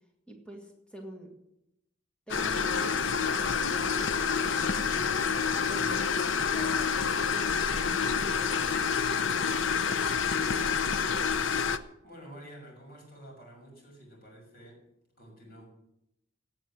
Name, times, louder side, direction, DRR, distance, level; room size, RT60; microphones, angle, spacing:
voice 1, 0.3-1.4 2.3-5.4 5.7-8.9 9.9-10.2, right 1 dB, 5° left, 1 dB, 2.1 m, -46 dB
sound 1, 2.3-11.8, left 6 dB, 75° left, 0.7 m, -28 dB
voice 2, 10.8-14.8 15.2-15.7, right 1 dB, 50° left, 0 dB, 6.6 m, -51 dB
17.5 x 8.0 x 7.5 m, 0.83 s
head